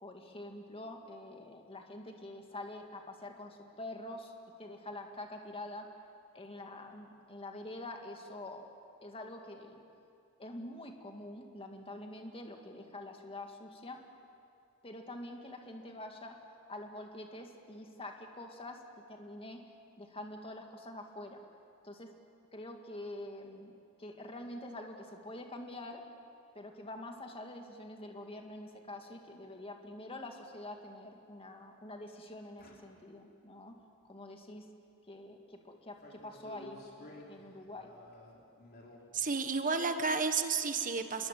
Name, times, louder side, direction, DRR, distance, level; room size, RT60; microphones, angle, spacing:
voice 1, 0.0-4.3 4.6-5.9 6.3-8.7 9.0-9.8 10.4-14.0 14.8-16.4 16.7-18.8 19.1-19.6 20.0-21.4 21.8-22.1 22.5-26.0 26.5-33.8 34.1-34.7 35.1-37.9, left 1 dB, 25° left, 3 dB, 2.2 m, -46 dB
sound 1, 32.6-33.6 36.0-39.2, left 1 dB, 45° left, 3.9 m, -53 dB
voice 2, 39.1-41.3, right 4 dB, 35° right, 7 dB, 1.4 m, -31 dB
27.0 x 22.0 x 7.7 m, 2.4 s
head